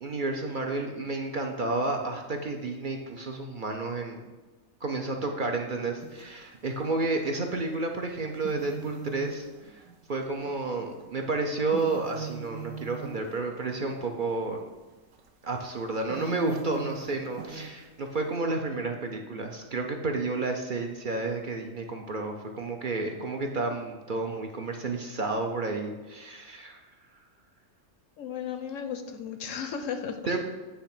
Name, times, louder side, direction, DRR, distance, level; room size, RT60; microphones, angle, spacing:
voice 1, 0.0-4.2 4.8-9.8 10.1-14.6 15.4-26.8 30.3-30.4, right 3 dB, 50° right, 3 dB, 0.6 m, -31 dB
sound 1, 6.0-6.6 7.7-7.8 8.3-11.1 11.5-14.5 15.1-15.3 15.7-15.8 16.1-18.3, right 5 dB, 65° right, 1.1 m, -40 dB
voice 2, 28.2-30.2, left 7 dB, 70° left, 8 dB, 0.9 m, -35 dB
8.4 x 3.4 x 5.8 m, 1.2 s
omnidirectional pair, 1.5 m